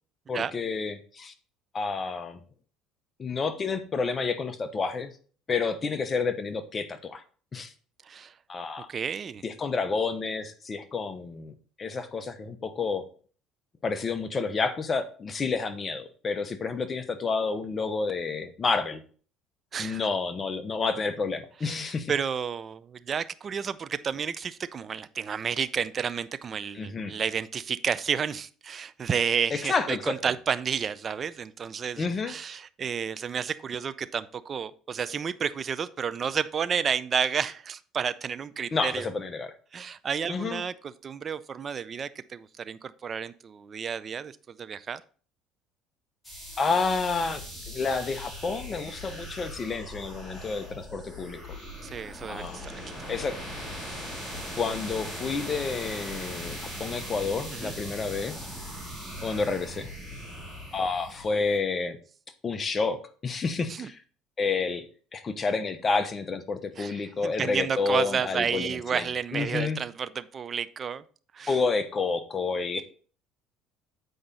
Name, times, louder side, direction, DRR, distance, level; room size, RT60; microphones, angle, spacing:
voice 1, 0.3-1.3 1.7-2.4 3.2-5.1 5.5-7.2 7.5-7.7 8.5-8.9 9.4-13.0 13.8-19.0 19.8-22.1 26.7-27.1 29.5-30.1 32.0-32.3 38.7-39.5 40.3-40.6 46.6-51.4 52.3-52.7 53.1-53.4 54.6-58.5 59.2-59.9 60.7-62.0 62.4-64.0 64.4-64.8 65.1-69.1 69.3-69.8 71.5-72.8, left 4 dB, 30° left, 9 dB, 0.9 m, -29 dB
voice 2, 8.0-8.3 8.9-9.4 19.7-20.0 21.6-39.1 39.7-45.0 51.8-53.2 57.5-57.8 63.7-63.9 66.8-71.0 71.3-71.6, right 7 dB, 35° right, 15 dB, 0.5 m, -31 dB
sound 1, 46.2-61.6, equal, 10° left, 3.1 m, -40 dB
7.9 x 5.0 x 4.1 m, 0.41 s
supercardioid pair, 110°, 0 cm